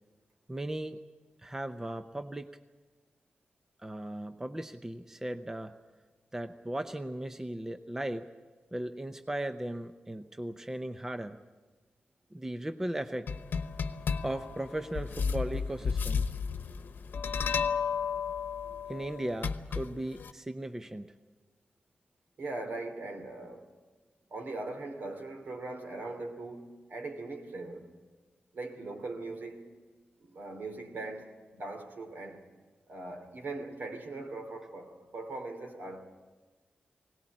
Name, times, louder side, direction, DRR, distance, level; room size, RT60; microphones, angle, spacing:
voice 1, 0.5-1.0 1.4-2.5 3.8-5.7 6.3-8.3 8.7-11.4 12.3-13.3 14.2-16.3 18.9-21.1, right 1 dB, 15° right, 0.6 m, -37 dB
sound 1, 13.3-20.3, left 6 dB, 70° left, 1.0 m, -33 dB
voice 2, 22.4-23.7 24.3-27.9 28.5-29.6 30.2-32.5 32.9-36.1, right 2 dB, 65° right, 2.9 m, -40 dB
21.5 x 18.5 x 8.6 m
wide cardioid pair, 145°, 3 cm